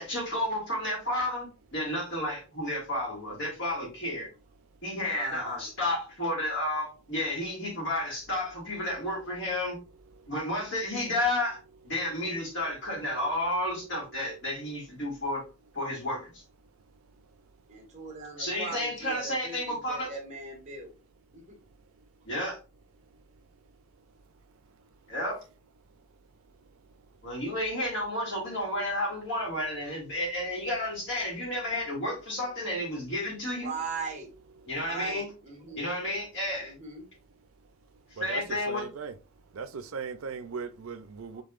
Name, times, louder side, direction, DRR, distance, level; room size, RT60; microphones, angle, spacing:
voice 1, 0.0-4.3 4.8-9.8 10.3-11.6 11.8-15.4 15.7-16.3 18.4-20.1 22.3-22.6 25.1-25.4 27.2-33.7 34.7-35.2 35.8-36.7 38.2-38.8, left 1 dB, 60° left, 2.3 m, -31 dB
voice 2, 5.0-5.7 17.7-20.9 21.3-21.5 33.6-34.3 34.9-35.9 36.6-37.0 41.3-41.4, right 4 dB, 35° right, 1.5 m, -39 dB
voice 3, 38.2-39.1 39.5-41.4, right 5 dB, 85° right, 0.5 m, -38 dB
5.5 x 3.4 x 2.4 m
head